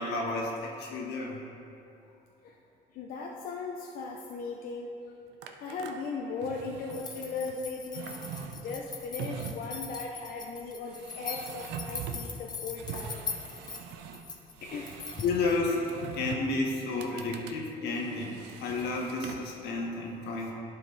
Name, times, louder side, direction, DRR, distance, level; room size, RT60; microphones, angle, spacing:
voice 1, 0.0-1.4 15.2-20.5, left 3 dB, 85° left, -1 dB, 1.3 m, -31 dB
voice 2, 2.9-4.9 5.6-8.1 8.5-13.2 14.6-15.0, left 4 dB, 60° left, 0 dB, 0.6 m, -38 dB
sound 1, 5.4-5.9 6.4-7.6 7.9-9.8 10.9-12.3 12.7-14.3 14.5-16.5 16.9-17.6 17.9-19.5, right 7 dB, 90° right, 0.6 m, -42 dB
sound 2, 6.9-15.4, left 4 dB, 25° left, 0.7 m, -41 dB
11.0 x 4.7 x 3.3 m, 2.7 s
cardioid pair, 110°, 17 cm